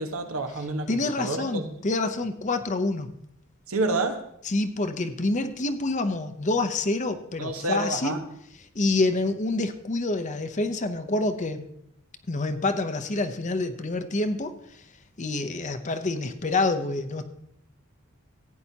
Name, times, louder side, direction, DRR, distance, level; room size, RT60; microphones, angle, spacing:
voice 1, 0.0-1.7 3.7-4.2 7.4-8.2, right 2 dB, 85° right, 5 dB, 1.4 m, -29 dB
voice 2, 0.9-3.1 4.4-8.2 8.7-11.7 12.3-14.8 15.2-17.3, left 2 dB, 35° left, 9 dB, 0.7 m, -27 dB
15.5 x 9.4 x 2.9 m, 0.74 s
head